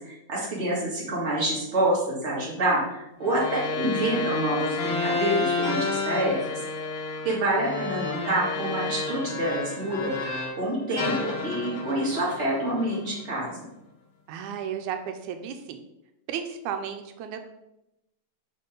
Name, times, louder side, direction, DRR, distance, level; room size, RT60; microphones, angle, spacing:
voice 1, 0.0-6.6 7.2-13.6, right 1 dB, 25° right, -5 dB, 2.4 m, -27 dB
sound 1, 3.2-10.6 11.0-13.4, left 4 dB, 60° left, 2.0 m, -30 dB
voice 2, 14.3-15.8 16.3-17.5, right 8 dB, 90° right, 6 dB, 2.2 m, -34 dB
6.0 x 5.5 x 5.3 m, 0.88 s
omnidirectional pair, 3.4 m